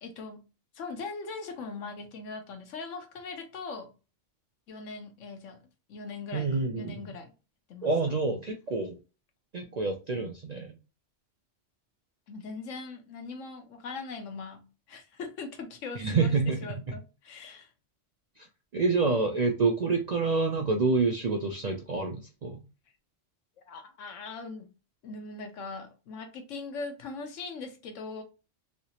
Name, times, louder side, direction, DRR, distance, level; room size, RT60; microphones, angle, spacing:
voice 1, 0.0-0.5 0.7-3.9 4.7-5.6 5.9-6.5 6.8-7.3 7.7-7.9 12.3-16.3 16.6-17.7 23.7-24.7 25.0-28.2, left 4 dB, 85° left, 1.2 m, -40 dB
voice 2, 6.3-7.0 7.8-9.0 9.5-10.8 16.0-16.6 18.4-18.5 18.7-22.6, right 4 dB, 60° right, 0.4 m, -27 dB
3.2 x 2.8 x 2.8 m
omnidirectional pair, 1.3 m